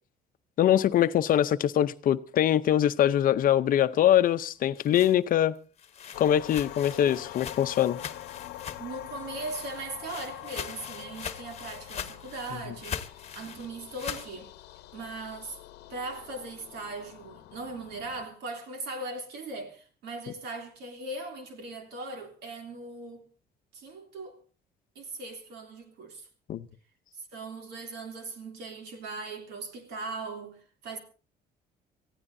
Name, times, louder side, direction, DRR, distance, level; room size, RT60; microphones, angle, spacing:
voice 1, 0.6-5.5 6.2-8.0 26.5-26.6, left 11 dB, 55° left, 0.7 m, -23 dB
sound 1, 4.5-9.1 9.3-14.3, left 8 dB, 40° left, 1.2 m, -41 dB
sound 2, 6.1-18.2, left 14 dB, 80° left, 0.9 m, -45 dB
voice 2, 8.8-14.5 14.9-15.6 15.9-23.3 23.7-24.4 24.9-26.3 27.1-31.0, right 2 dB, 80° right, 3.1 m, -39 dB
26.0 x 15.5 x 2.7 m
cardioid pair, 110°, 17 cm